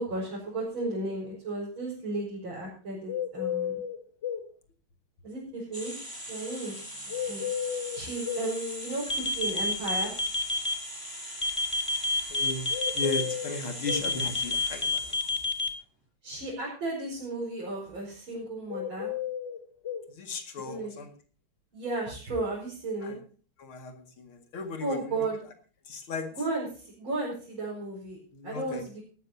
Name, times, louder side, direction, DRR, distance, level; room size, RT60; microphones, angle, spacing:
voice 1, 0.0-3.8 5.2-5.9 6.3-6.7 7.3-7.5 7.9-10.1 16.2-19.1 20.6-21.1 21.7-23.2 24.8-25.4 26.3-28.2 28.4-29.0, right 2 dB, 75° right, -5 dB, 5.8 m, -34 dB
sound 1, 3.1-4.5 7.1-8.5 12.7-14.1 18.7-20.1, left 9 dB, 40° left, 1.4 m, -33 dB
sound 2, 5.7-15.7, equal, 10° right, 6.6 m, -41 dB
sound 3, 9.1-10.7 11.4-13.2 13.9-15.7, left 2 dB, 20° left, 1.2 m, -28 dB
voice 2, 12.3-12.6 12.9-14.9 20.2-21.1 23.0-23.1 23.6-23.9 24.5-24.9 25.9-26.3 28.4-28.8, left 3 dB, 85° left, 7 dB, 2.9 m, -35 dB
18.0 x 13.0 x 2.7 m, 0.40 s
omnidirectional pair, 2.2 m